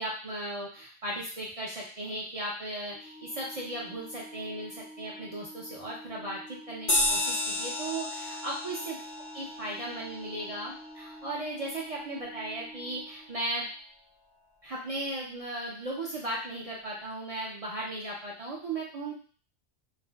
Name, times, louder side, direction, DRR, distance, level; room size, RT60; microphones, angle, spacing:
voice 1, 0.0-9.0 9.3-13.7 14.6-19.1, right 1 dB, 50° right, -4 dB, 0.4 m, -36 dB
Organ, 2.9-13.8, right 1 dB, 90° left, 1.0 m, -48 dB
sound 1, 6.9-11.8, left 2 dB, 40° left, 0.4 m, -33 dB
2.5 x 2.1 x 3.3 m, 0.41 s
omnidirectional pair, 1.2 m